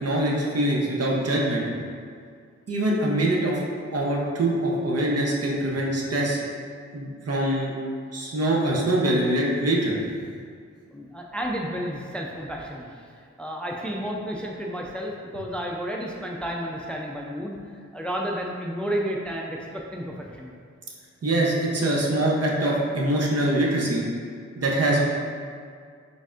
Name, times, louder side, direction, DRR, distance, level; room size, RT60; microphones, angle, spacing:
voice 1, 0.0-1.7 2.7-3.6 3.9-6.4 6.9-7.7 8.1-10.0 21.2-24.0 24.6-25.0, right 1 dB, 55° right, -2 dB, 0.8 m, -23 dB
voice 2, 10.9-13.1 13.4-20.5, equal, 5° left, -1 dB, 0.4 m, -32 dB
4.0 x 3.4 x 2.5 m, 2.2 s
cardioid pair, 45°, 29 cm